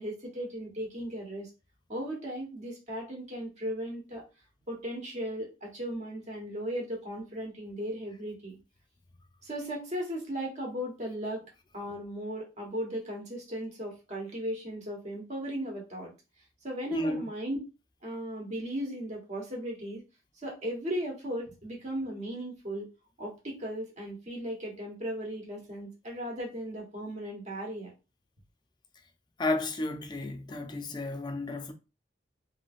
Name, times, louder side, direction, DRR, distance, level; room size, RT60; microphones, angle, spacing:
voice 1, 0.0-1.5 1.9-4.2 4.7-8.6 9.4-16.1 16.6-17.6 18.0-20.0 20.4-22.9 23.2-27.9, equal, 40° right, 1.1 m, -36 dB
voice 2, 16.9-17.2 29.4-31.7, left 2 dB, 25° left, 0.4 m, -32 dB
3.1 x 2.6 x 2.4 m
head